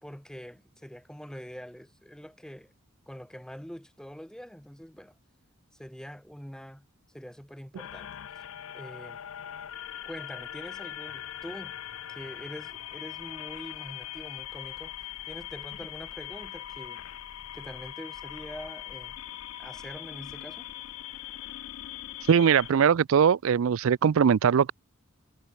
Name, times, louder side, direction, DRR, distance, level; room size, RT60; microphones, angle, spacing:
voice 1, 0.0-2.7 3.1-5.1 5.7-8.1 8.7-9.2 10.0-11.8 12.1-14.9 15.3-17.0 17.5-19.2 19.6-20.7, equal, 5° left, 1.1 m, -44 dB
sound 1, 7.8-22.7, left 12 dB, 75° left, 0.5 m, -41 dB
voice 2, 22.3-24.7, right 7 dB, 70° right, 0.4 m, -21 dB
head